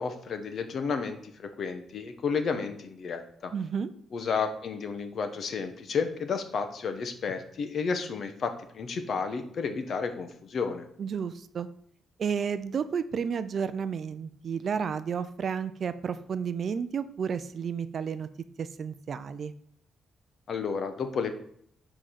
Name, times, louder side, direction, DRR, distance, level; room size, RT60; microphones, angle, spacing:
voice 1, 0.0-3.5 4.1-10.8 20.5-21.3, left 5 dB, 50° left, 8 dB, 1.0 m, -32 dB
voice 2, 3.5-3.9 11.0-11.7 12.2-18.3 18.6-19.5, right 6 dB, 45° right, 12 dB, 0.4 m, -32 dB
7.6 x 5.0 x 5.8 m, 0.68 s
cardioid pair, 150°, 0 cm